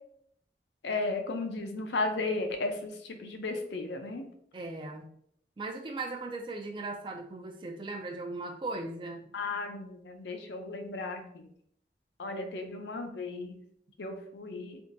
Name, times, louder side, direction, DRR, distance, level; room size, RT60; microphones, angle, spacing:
voice 1, 0.8-4.3 9.3-11.4 12.2-13.6 14.0-14.8, left 3 dB, 80° left, 5 dB, 0.6 m, -35 dB
voice 2, 4.5-5.0 5.6-9.3, right 2 dB, 25° right, 3 dB, 0.4 m, -38 dB
3.5 x 2.6 x 2.5 m, 0.67 s
head